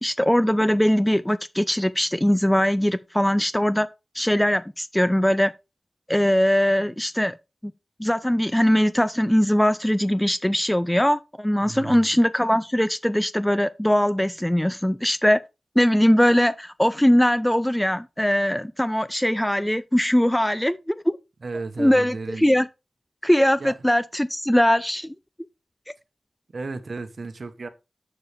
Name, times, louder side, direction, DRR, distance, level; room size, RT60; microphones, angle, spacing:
voice 1, 0.0-3.9 4.1-5.5 6.1-7.4 7.6-7.7 8.0-15.4 15.8-21.2 21.8-22.7 23.2-25.1, equal, 5° left, 0.3 m, -21 dB
voice 2, 11.6-12.1 21.4-22.5 23.6-23.7 26.5-27.7, right 3 dB, 55° right, 1.0 m, -34 dB
7.0 x 6.6 x 3.4 m
wide cardioid pair, 95°, 0 cm